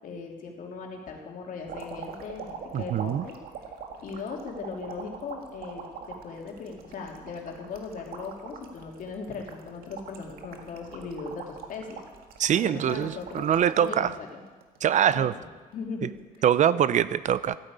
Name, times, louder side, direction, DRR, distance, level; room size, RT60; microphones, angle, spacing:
voice 1, 0.0-3.4 4.0-12.0 12.5-14.4 15.1-15.3 15.7-16.1 16.4-16.5, left 4 dB, 60° left, 1 dB, 3.1 m, -38 dB
sound 1, 1.7-14.0 14.5-15.2 16.2-16.4, right 6 dB, 75° right, 1.8 m, -43 dB
voice 2, 2.7-3.2 12.4-14.2 14.8-15.3 16.4-17.6, right 9 dB, 50° right, 17 dB, 0.5 m, -23 dB
14.5 x 8.8 x 8.8 m, 1.3 s
cardioid pair, 105°, 16 cm